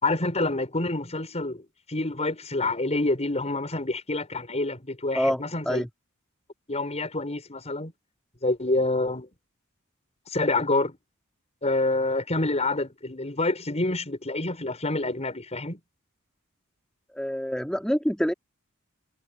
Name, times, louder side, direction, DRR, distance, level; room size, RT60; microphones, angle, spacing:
voice 1, 0.0-5.8 6.7-7.9 8.4-9.3 10.3-11.0 11.6-15.8, left 2 dB, 30° left, 6.6 m, -27 dB
voice 2, 5.1-5.9 17.1-18.3, equal, 5° left, 4.2 m, -26 dB
head